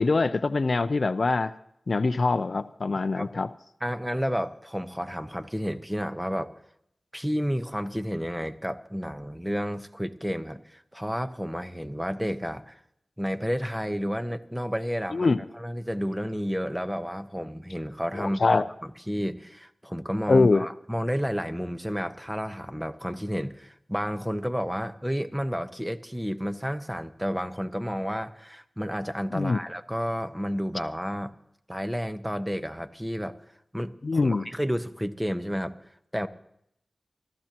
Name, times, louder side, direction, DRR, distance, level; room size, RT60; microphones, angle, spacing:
voice 1, 0.0-1.5 1.9-3.5 15.1-15.4 18.1-18.6 20.3-20.6 29.3-29.6 34.0-34.5, left 3 dB, 70° left, 13 dB, 0.5 m, -23 dB
voice 2, 3.8-6.6 7.1-12.8 13.2-31.3 31.7-33.4 33.7-35.8 36.1-36.3, equal, 5° right, 9 dB, 1.0 m, -31 dB
24.0 x 13.5 x 2.9 m, 0.75 s
cardioid pair, 45°, 0 cm